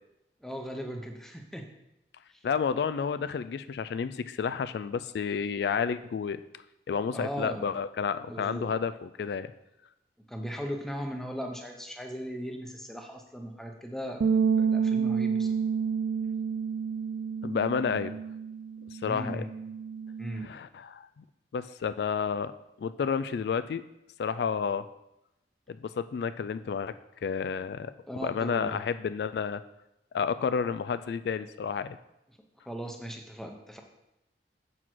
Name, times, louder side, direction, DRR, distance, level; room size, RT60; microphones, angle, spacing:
voice 1, 0.4-1.7 2.3-2.4 7.1-7.7 8.3-8.7 10.3-14.3 14.6-15.5 19.0-19.5 20.2-20.5 28.1-28.8 32.7-33.8, equal, ahead, 3 dB, 0.8 m, -37 dB
voice 2, 2.4-6.4 6.9-9.5 17.4-18.1 19.0-19.4 20.4-21.2 21.5-22.5 22.8-23.8 24.2-24.9 25.7-26.9 27.2-27.9 28.2-29.6 30.1-32.0, left 6 dB, 70° left, 13 dB, 0.3 m, -30 dB
sound 1, 14.2-20.5, right 6 dB, 80° right, 0.4 m, -29 dB
7.6 x 6.1 x 4.6 m, 0.88 s
head